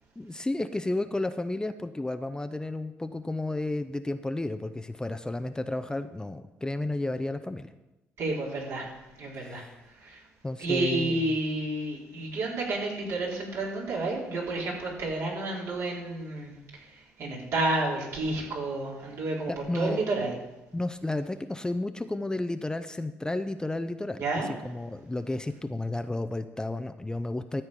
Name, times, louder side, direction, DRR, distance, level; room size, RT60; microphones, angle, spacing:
voice 1, 0.2-7.7 9.4-9.8 10.4-11.2 19.5-20.0 20.7-27.6, left 2 dB, 15° left, 9 dB, 0.7 m, -32 dB
voice 2, 8.2-8.9 9.2-9.6 10.0-10.2 10.6-16.5 17.2-20.3 24.2-24.5, right 2 dB, 65° right, -3 dB, 4.1 m, -30 dB
13.0 x 4.5 x 8.3 m, 1.0 s
supercardioid pair, 65°, 6 cm